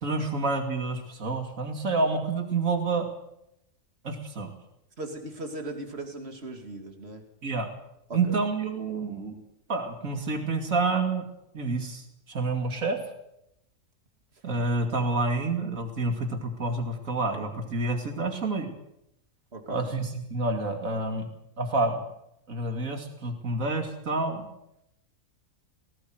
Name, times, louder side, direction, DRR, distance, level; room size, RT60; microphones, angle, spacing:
voice 1, 0.0-3.1 4.0-4.5 7.4-7.7 8.1-9.3 9.7-11.3 11.5-13.0 14.4-18.7 19.7-21.3 21.6-22.0 22.5-24.5, right 3 dB, 70° right, 4 dB, 2.9 m, -28 dB
voice 2, 5.0-7.2 8.1-8.4 19.5-19.9, right 2 dB, 45° right, 4 dB, 2.9 m, -38 dB
19.5 x 17.0 x 8.0 m, 0.82 s
omnidirectional pair, 1.5 m